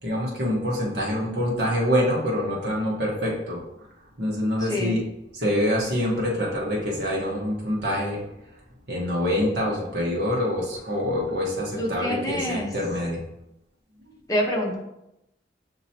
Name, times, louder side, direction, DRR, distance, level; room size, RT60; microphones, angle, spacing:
voice 1, 0.0-3.6 4.2-5.0 5.3-8.3 8.9-13.2 14.1-14.2, equal, 65° right, -3 dB, 1.2 m, -25 dB
voice 2, 4.6-5.0 11.8-12.7 14.3-14.8, equal, 20° left, -1 dB, 0.8 m, -26 dB
6.4 x 2.9 x 2.8 m, 0.87 s
head